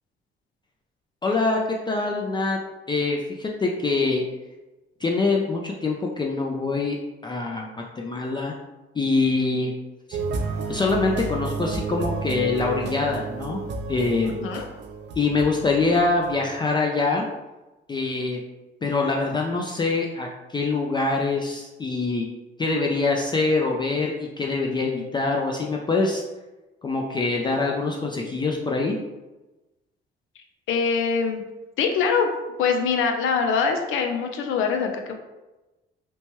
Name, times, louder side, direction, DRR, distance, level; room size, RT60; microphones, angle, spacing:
voice 1, 1.2-1.6 1.9-2.6 2.9-4.2 5.0-7.0 7.2-7.7 8.0-8.5 9.0-9.7 10.1-10.2 10.7-13.6 13.9-14.6 15.2-17.2 17.9-18.4 18.8-22.3 22.6-26.2 26.8-28.9, left 3 dB, 25° left, -1 dB, 0.3 m, -24 dB
sound 1, 10.1-16.5, right 4 dB, 65° right, 0.5 m, -31 dB
voice 2, 14.3-14.7 30.7-31.4 31.8-32.3 32.6-35.2, left 5 dB, 80° left, 5 dB, 0.5 m, -23 dB
3.0 x 2.2 x 2.9 m, 1.1 s
cardioid pair, 90°, 20 cm